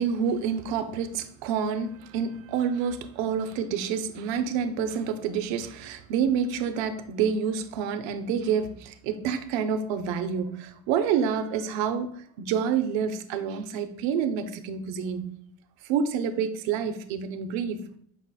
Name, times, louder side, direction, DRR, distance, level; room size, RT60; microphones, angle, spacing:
voice 1, 0.0-12.1 12.4-15.3 15.8-17.9, right 7 dB, 70° right, 0.6 m, -28 dB
5.7 x 4.0 x 2.2 m
cardioid pair, 110°, 47 cm